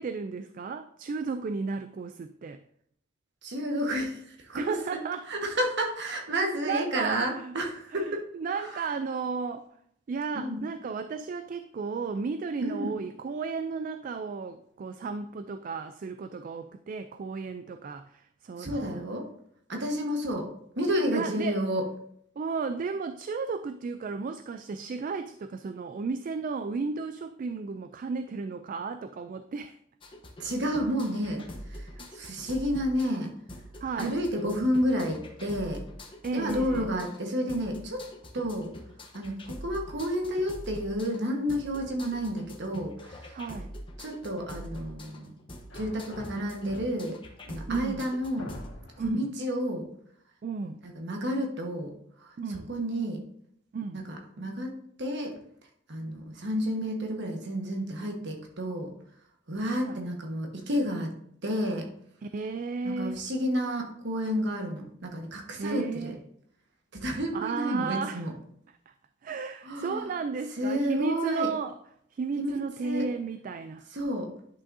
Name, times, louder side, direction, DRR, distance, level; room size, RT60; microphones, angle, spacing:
voice 1, 0.0-2.6 4.5-5.3 6.6-7.6 7.9-9.7 10.1-19.0 21.1-21.6 22.4-29.8 32.0-32.1 33.8-34.1 36.2-36.9 43.3-43.7 47.7-48.0 49.0-49.3 50.4-50.8 52.4-52.7 53.7-54.0 59.7-60.0 62.2-63.2 65.6-66.2 67.3-68.2 68.9-69.0 69.2-71.8 72.1-73.9, right 4 dB, 40° right, 9 dB, 0.3 m, -34 dB
voice 2, 3.4-5.0 5.3-8.3 8.5-8.8 10.3-10.6 12.6-12.9 18.6-19.3 19.7-20.5 20.7-21.8 30.4-33.3 34.0-35.8 36.3-38.0 38.3-38.7 39.1-43.4 44.0-45.4 45.7-47.2 47.4-48.6 49.0-49.9 50.8-53.2 53.9-55.4 55.9-58.9 59.5-61.1 61.4-61.9 62.8-66.2 66.9-68.3 69.6-70.1 70.6-71.5 72.4-73.1 73.9-74.3, equal, 60° right, 2 dB, 1.4 m, -31 dB
sound 1, 30.0-48.7, equal, 25° left, 1.0 m, -44 dB
sound 2, 45.7-47.2 47.9-48.0 48.4-49.2, left 1 dB, 70° left, 1.7 m, -46 dB
10.5 x 6.0 x 2.7 m, 0.68 s
head